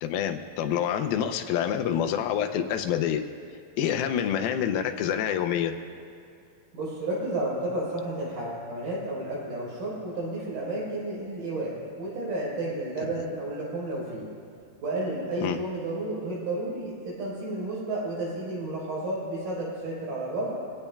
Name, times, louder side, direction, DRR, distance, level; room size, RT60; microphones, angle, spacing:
voice 1, 0.0-3.2 3.8-5.7 15.4-15.6, left 9 dB, 85° left, 6 dB, 2.5 m, -27 dB
voice 2, 6.7-11.7 12.0-14.3 14.8-20.7, right 2 dB, 70° right, -6 dB, 5.8 m, -32 dB
23.0 x 17.0 x 2.3 m, 2.4 s
omnidirectional pair, 4.3 m